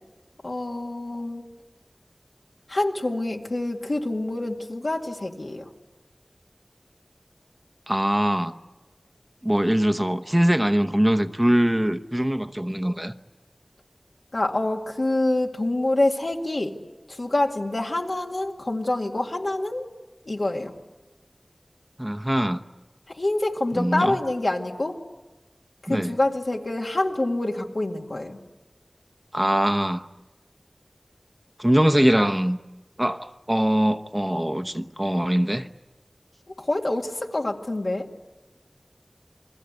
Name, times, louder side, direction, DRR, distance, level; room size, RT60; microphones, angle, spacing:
voice 1, 0.4-1.4 2.7-5.7 14.3-16.7 17.1-19.9 20.3-20.7 23.1-25.0 25.9-28.4 36.6-38.1, left 2 dB, 85° left, 1 dB, 2.2 m, -26 dB
voice 2, 7.9-8.6 9.4-13.1 22.0-22.6 23.7-24.2 25.9-26.1 29.3-30.1 31.6-32.6 33.0-35.7, equal, 20° right, 9 dB, 0.9 m, -22 dB
29.0 x 21.5 x 8.2 m, 1.1 s
wide cardioid pair, 45°, 0 cm